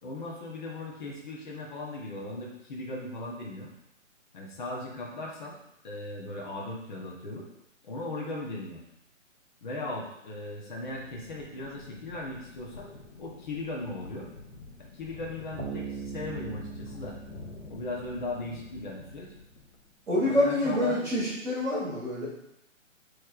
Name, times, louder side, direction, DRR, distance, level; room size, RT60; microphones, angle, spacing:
voice 1, 0.0-3.7 4.3-5.6 5.8-7.4 7.8-8.8 9.6-12.9 13.2-14.3 14.8-17.2 17.7-19.3 20.3-21.0, left 2 dB, 35° left, -2 dB, 0.9 m, -37 dB
sound 1, 10.7-19.9, left 3 dB, 70° left, 1.1 m, -47 dB
Bass guitar, 15.6-19.1, right 5 dB, 55° right, 1.0 m, -41 dB
voice 2, 20.1-22.3, left 1 dB, 5° right, -14 dB, 0.7 m, -27 dB
6.6 x 3.1 x 2.4 m, 0.83 s
hypercardioid pair, 150°, 39 cm